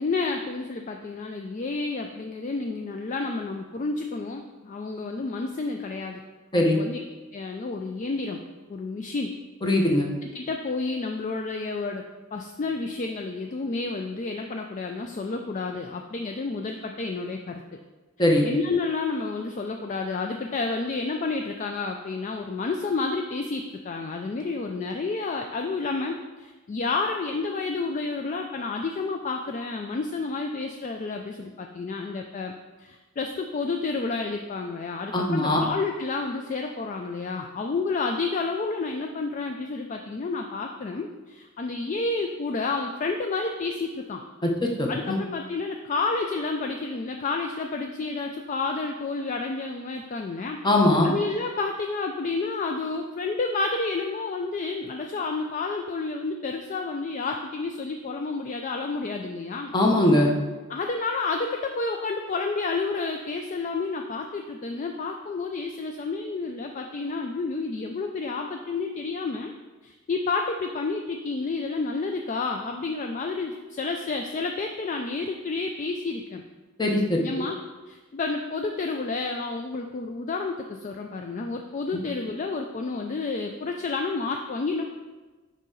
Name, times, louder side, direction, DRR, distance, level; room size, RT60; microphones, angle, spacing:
voice 1, 0.0-6.2 6.5-7.0 7.3-8.4 8.7-9.4 10.2-12.0 12.3-17.6 18.4-32.5 32.8-44.2 44.9-50.6 51.0-59.7 60.7-69.5 69.8-76.4 77.2-77.6 77.9-84.9, left 3 dB, 35° left, 3 dB, 0.3 m, -30 dB
voice 2, 9.6-10.1 18.2-18.4 35.1-35.6 44.4-45.2 50.6-51.1 59.7-60.3 76.8-77.2, left 1 dB, 20° left, 0 dB, 0.8 m, -21 dB
6.6 x 4.9 x 3.8 m, 1.3 s
head